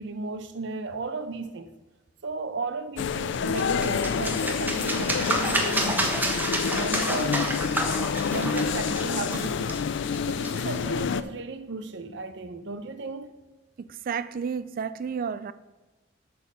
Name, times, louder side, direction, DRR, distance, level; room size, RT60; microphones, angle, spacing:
voice 1, 0.0-1.7 2.2-6.3 6.7-7.5 8.2-9.8 10.3-13.3, right 3 dB, 70° right, 0.7 m, -35 dB
sound 1, 3.0-11.2, left 6 dB, 65° left, 0.4 m, -28 dB
sound 2, 3.3-10.8, right 1 dB, 10° right, 1.0 m, -30 dB
voice 2, 13.8-15.5, right 6 dB, 50° right, 0.3 m, -31 dB
8.4 x 4.3 x 6.7 m
head